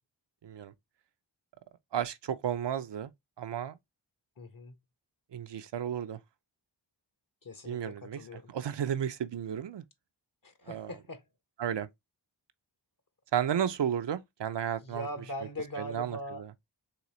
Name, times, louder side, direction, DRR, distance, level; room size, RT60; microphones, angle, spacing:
voice 1, 0.4-0.7 1.9-3.1 3.4-3.8 5.3-6.2 7.6-9.8 10.7-10.9 11.6-11.9 13.3-15.1 15.8-16.5, right 9 dB, 65° right, 0.6 m, -33 dB
voice 2, 4.4-4.7 7.4-8.5 10.4-11.2 14.8-16.4, left 1 dB, 45° left, 1.2 m, -41 dB
3.8 x 3.2 x 3.0 m
cardioid pair, 45°, 45 cm